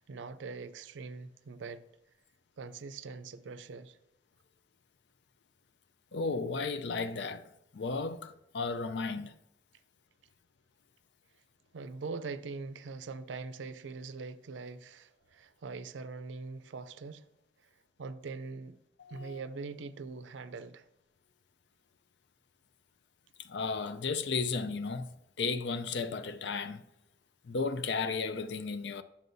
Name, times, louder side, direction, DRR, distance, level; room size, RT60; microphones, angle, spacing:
voice 1, 0.0-1.9 2.6-4.0 11.7-17.3 18.0-18.8 19.1-20.8, right 4 dB, 85° right, 0.5 m, -42 dB
voice 2, 6.1-7.4 7.7-9.3 19.0-19.4 23.4-26.8 27.4-29.0, left 4 dB, 65° left, 0.5 m, -34 dB
9.3 x 7.2 x 2.6 m
head